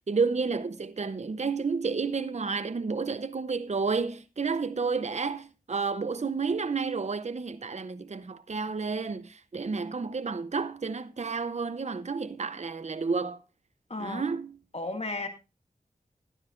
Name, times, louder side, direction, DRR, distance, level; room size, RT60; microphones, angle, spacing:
voice 1, 0.1-13.4 14.0-14.6, right 4 dB, 50° right, 0.7 m, -31 dB
voice 2, 13.9-14.3 14.7-15.3, left 2 dB, 45° left, 2.1 m, -33 dB
14.5 x 12.0 x 2.5 m
cardioid pair, 40°, 15 cm